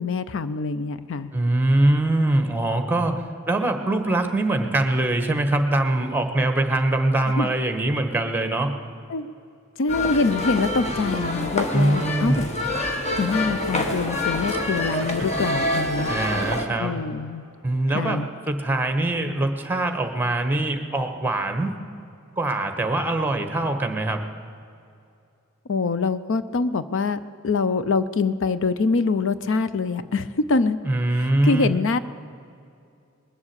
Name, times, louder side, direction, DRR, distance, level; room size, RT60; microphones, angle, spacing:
voice 1, 0.0-1.3 7.4-7.5 9.1-9.3 9.8-12.5 13.2-16.1 16.8-17.4 17.9-18.3 25.7-30.8 31.1-32.0, left 4 dB, 65° left, 13 dB, 0.5 m, -24 dB
voice 2, 1.3-8.7 11.7-12.5 14.5-14.6 16.1-17.0 17.6-21.7 22.4-24.2 30.8-31.7, right 2 dB, 10° right, 6 dB, 1.1 m, -23 dB
sound 1, 9.9-16.7, left 1 dB, 35° left, 1.4 m, -26 dB
20.5 x 7.3 x 8.0 m, 2.5 s
head